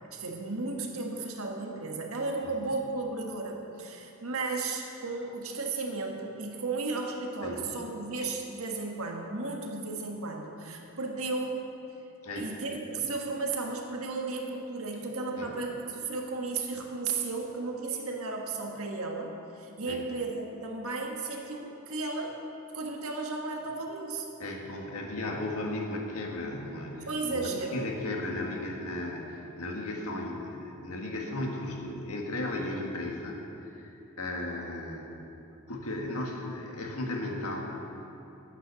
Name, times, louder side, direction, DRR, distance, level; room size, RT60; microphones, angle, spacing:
voice 1, 0.1-11.6 12.3-22.4 22.7-24.3 27.1-27.8, right 3 dB, 70° right, 1 dB, 1.5 m, -34 dB
voice 2, 24.4-33.4 33.7-35.1 35.7-37.6, left 1 dB, 80° left, 0 dB, 1.7 m, -35 dB
9.6 x 9.2 x 6.9 m, 2.9 s
head